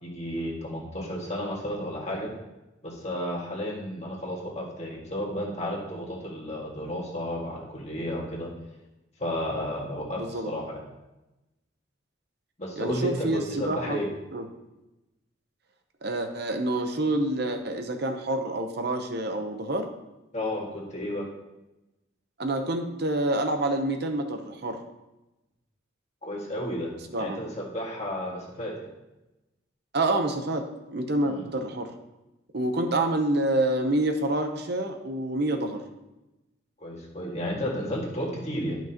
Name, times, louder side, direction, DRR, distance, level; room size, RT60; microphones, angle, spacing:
voice 1, 0.0-2.3 2.8-8.5 9.2-10.8 12.6-14.1 20.3-21.3 26.2-26.9 27.2-28.7 31.2-31.5 36.8-38.8, equal, 35° left, -2 dB, 1.8 m, -32 dB
voice 2, 10.2-10.5 12.8-14.0 14.3-14.4 16.0-19.9 22.4-24.8 27.1-27.4 29.9-31.9 32.5-35.8, right 1 dB, 50° right, 5 dB, 0.8 m, -27 dB
11.5 x 6.0 x 2.9 m, 0.98 s
head